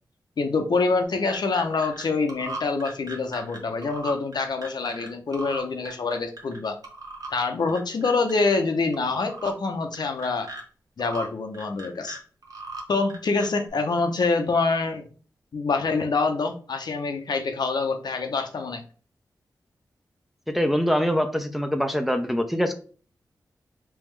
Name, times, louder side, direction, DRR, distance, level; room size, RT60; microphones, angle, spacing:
voice 1, 0.4-6.8 7.3-10.5 11.0-12.2 12.9-15.0 15.5-18.8, left 4 dB, 65° left, 5 dB, 0.7 m, -25 dB
sound 1, 1.0-2.0 2.3-5.1 5.3-6.6 6.8-7.3 7.7-8.6 8.9-9.5 9.9-10.6 11.0-11.3 11.5-12.8 13.1-13.7, right 2 dB, 55° right, 1.2 m, -38 dB
voice 2, 20.5-22.7, equal, ahead, 6 dB, 0.6 m, -24 dB
3.5 x 3.0 x 3.2 m, 0.40 s
cardioid pair, 40°, 8 cm